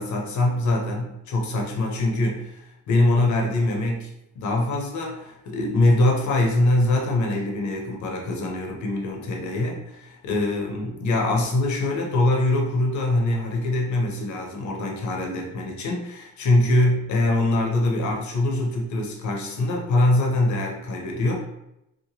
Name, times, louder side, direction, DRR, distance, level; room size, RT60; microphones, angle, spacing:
voice 1, 0.0-2.6 2.9-4.1 4.4-21.3, left 2 dB, 70° left, 0 dB, 0.8 m, -23 dB
2.9 x 2.2 x 2.8 m, 0.85 s
cardioid pair, 90°, 30 cm